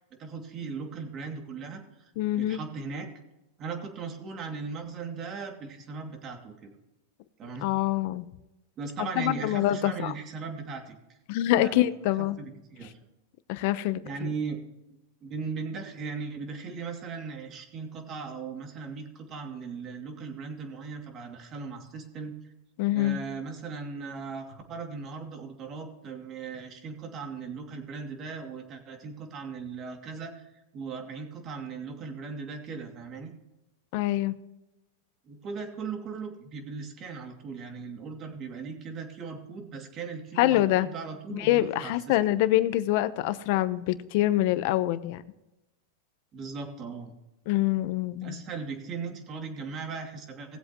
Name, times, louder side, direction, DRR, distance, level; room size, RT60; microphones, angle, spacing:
voice 1, 0.2-2.0 2.4-3.1 3.6-6.7 7.4-7.7 8.8-11.2 11.5-11.8 12.2-13.0 14.0-14.6 14.9-22.5 22.9-33.3 35.3-42.2 46.3-47.1 48.2-50.6, right 5 dB, 30° right, 4 dB, 2.6 m, -38 dB
voice 2, 2.2-2.6 7.6-8.2 9.2-10.1 11.3-12.4 13.5-14.0 22.8-23.2 33.9-34.3 40.4-40.9 41.3-45.2 47.5-48.4, left 15 dB, 55° left, 13 dB, 0.9 m, -25 dB
19.0 x 7.9 x 3.1 m, 0.95 s
supercardioid pair, 130°, 0 cm